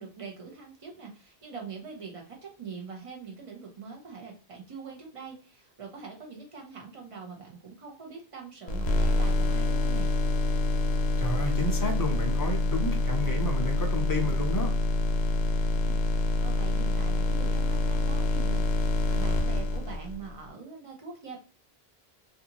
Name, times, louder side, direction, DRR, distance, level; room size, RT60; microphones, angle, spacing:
voice 1, 0.0-10.1 15.7-21.4, right 5 dB, 35° right, 0 dB, 0.7 m, -43 dB
sound 1, 8.7-20.3, left 1 dB, 85° left, 0.9 m, -26 dB
voice 2, 11.2-14.7, left 2 dB, 30° left, 2 dB, 0.4 m, -31 dB
2.5 x 2.4 x 2.8 m, 0.36 s
omnidirectional pair, 1.1 m